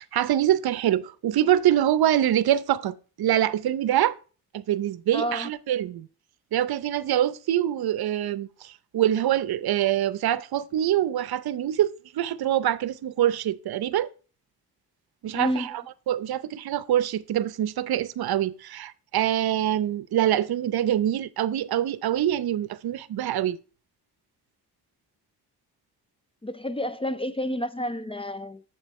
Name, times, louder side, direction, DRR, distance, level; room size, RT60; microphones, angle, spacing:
voice 1, 0.0-4.2 4.5-6.1 6.5-14.1 15.2-23.6, right 11 dB, 65° right, 0.7 m, -25 dB
voice 2, 5.1-5.5 15.3-15.7 26.4-28.6, equal, 15° left, 0.4 m, -30 dB
7.9 x 7.7 x 3.1 m
cardioid pair, 100°, 40 cm